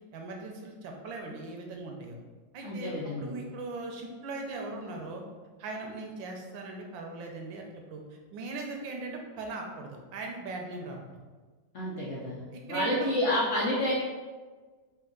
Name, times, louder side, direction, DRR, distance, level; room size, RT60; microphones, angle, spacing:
voice 1, 0.1-2.2 2.5-5.2 5.6-8.0 8.3-11.0 12.5-13.1, right 3 dB, 90° right, 1 dB, 1.4 m, -39 dB
voice 2, 2.6-3.4 11.7-12.4 12.7-13.9, left 1 dB, 55° left, -6 dB, 0.8 m, -29 dB
4.3 x 2.5 x 3.7 m, 1.4 s
omnidirectional pair, 2.0 m